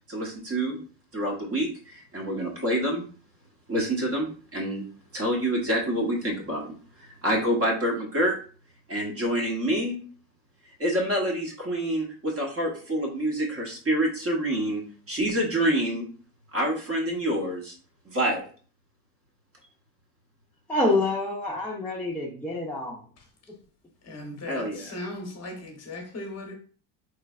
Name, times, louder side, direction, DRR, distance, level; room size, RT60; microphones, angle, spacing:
voice 1, 0.1-0.8 1.1-3.0 3.7-4.8 5.1-6.7 7.0-8.3 8.9-10.0 10.8-14.8 15.1-16.1 16.5-17.7 18.1-18.4 24.5-24.9, right 1 dB, 30° right, 1.0 m, -27 dB
voice 2, 20.7-23.0, left 2 dB, 5° left, 0.6 m, -27 dB
voice 3, 24.0-26.5, left 2 dB, 30° left, 1.0 m, -37 dB
3.8 x 3.2 x 2.3 m
supercardioid pair, 105°, 50 cm